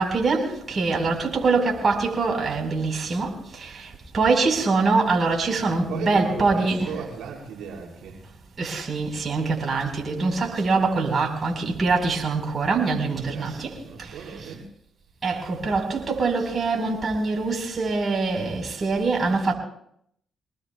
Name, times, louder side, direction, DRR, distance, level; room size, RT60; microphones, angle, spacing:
voice 1, 0.0-6.9 8.6-14.2 15.2-19.5, right 3 dB, 45° right, 4.8 m, -24 dB
voice 2, 0.8-1.2 5.7-8.2 13.0-14.7, right 6 dB, 80° right, 3.2 m, -37 dB
24.5 x 19.5 x 2.4 m
supercardioid pair, 65°, 0 cm